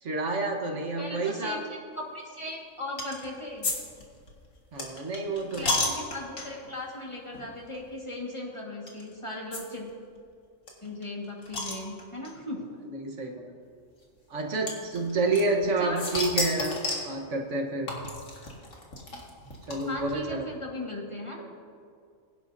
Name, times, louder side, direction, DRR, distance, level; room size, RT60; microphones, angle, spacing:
voice 1, 0.0-1.6 4.7-5.9 12.9-13.5 14.3-16.8 17.0-17.9 19.7-20.5, right 2 dB, 65° right, 2 dB, 1.5 m, -29 dB
voice 2, 1.0-1.6 2.1-3.7 5.5-9.9 10.8-12.6 15.8-16.0 19.9-21.5, left 1 dB, 25° left, -2 dB, 1.7 m, -37 dB
sound 1, 3.0-3.3 3.6-6.7 7.3-7.5 7.7-7.8 8.9-9.0 9.5-9.6 9.9-10.0 10.2-10.3 10.7-12.3 13.2-13.3 14.7-15.7 16.0-17.1 17.9-20.2, left 2 dB, 85° left, 2.2 m, -32 dB
22.0 x 10.5 x 2.6 m, 2.2 s
omnidirectional pair, 1.3 m